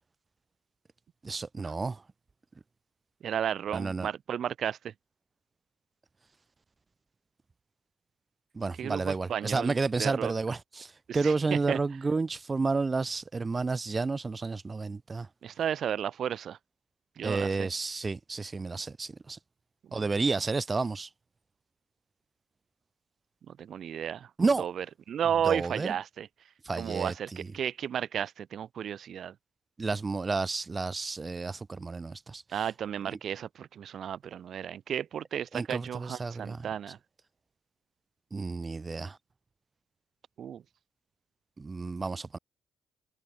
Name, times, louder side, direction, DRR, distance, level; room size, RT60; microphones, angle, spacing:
voice 1, 1.2-2.0 3.7-4.1 8.5-15.3 17.2-19.4 19.9-21.1 24.4-24.6 25.4-25.9 26.6-27.1 29.8-32.4 35.5-36.6 38.3-39.2 41.6-42.4, right 4 dB, 30° right, 6.1 m, -31 dB
voice 2, 3.2-4.9 8.8-10.3 11.1-11.8 15.4-16.6 17.2-17.7 19.9-20.0 23.5-24.3 24.6-26.3 26.8-29.3 32.5-37.0 40.4-40.6, right 9 dB, 60° right, 5.8 m, -33 dB
cardioid pair, 90°, 0 cm